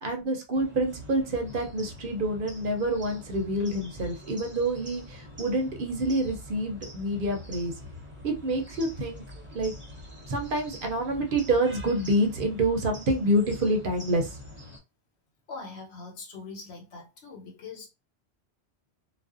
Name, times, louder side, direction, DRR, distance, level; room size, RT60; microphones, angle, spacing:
voice 1, 0.0-7.7 8.2-9.2 9.5-9.7 10.3-14.4, right 1 dB, 60° right, 0.7 m, -27 dB
sound 1, 0.5-14.8, left 1 dB, 15° right, 0.6 m, -45 dB
voice 2, 15.5-17.9, left 4 dB, 80° left, 1.1 m, -42 dB
2.5 x 2.1 x 2.4 m
omnidirectional pair, 1.1 m